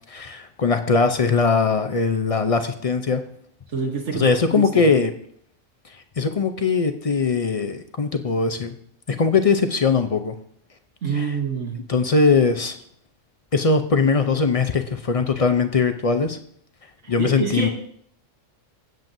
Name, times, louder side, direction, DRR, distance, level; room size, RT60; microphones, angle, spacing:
voice 1, 0.1-3.2 4.1-5.1 6.2-8.7 9.1-10.3 11.1-11.3 11.9-12.8 13.5-16.4 17.1-17.7, left 4 dB, 45° left, 8 dB, 0.5 m, -20 dB
voice 2, 3.7-4.9 11.0-11.8 17.0-17.7, right 5 dB, 70° right, 2 dB, 1.3 m, -27 dB
17.0 x 7.6 x 2.7 m, 0.64 s
omnidirectional pair, 1.3 m